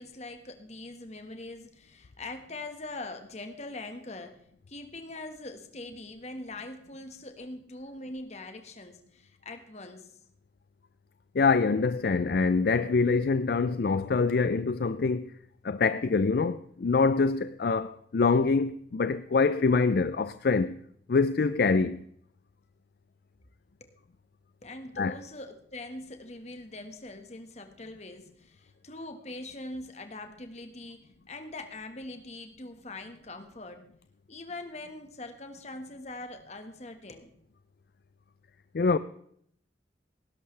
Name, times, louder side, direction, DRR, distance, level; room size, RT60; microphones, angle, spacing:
voice 1, 0.0-10.2 23.8-24.0 24.6-33.8 34.3-37.3, left 2 dB, 40° left, 1.5 m, -42 dB
voice 2, 11.3-15.3 15.6-20.8 21.1-22.0 25.0-25.2 38.7-39.0, left 4 dB, 55° left, 0.4 m, -25 dB
19.0 x 11.0 x 3.3 m
head